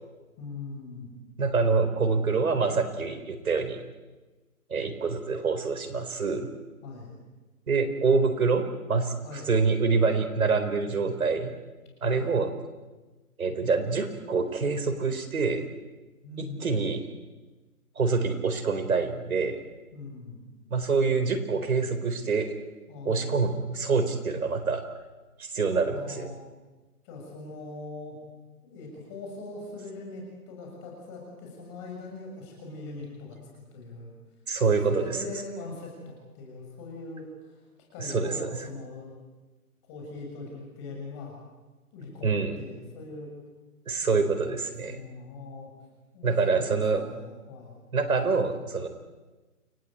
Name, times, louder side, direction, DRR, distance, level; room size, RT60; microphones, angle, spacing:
voice 1, 0.4-1.2 6.8-7.1 9.2-9.5 12.0-12.3 16.2-16.7 19.9-20.4 22.9-23.5 25.9-26.4 27.0-28.2 28.6-34.1 34.9-37.6 37.9-39.1 39.9-41.4 41.9-43.3 44.1-45.7 46.1-46.7 46.9-47.8, left 3 dB, 20° left, 0 dB, 6.8 m, -41 dB
voice 2, 1.4-3.8 4.7-6.5 7.7-9.1 9.5-11.5 12.0-12.5 13.4-15.6 16.6-17.0 18.0-19.6 20.7-22.5 23.0-24.8 25.4-26.3 34.5-35.2 38.0-38.3 42.2-42.6 43.9-45.0 46.2-47.0 47.9-48.9, right 4 dB, 65° right, 7 dB, 4.3 m, -26 dB
29.5 x 20.0 x 8.6 m, 1.2 s
hypercardioid pair, 170°, 45 cm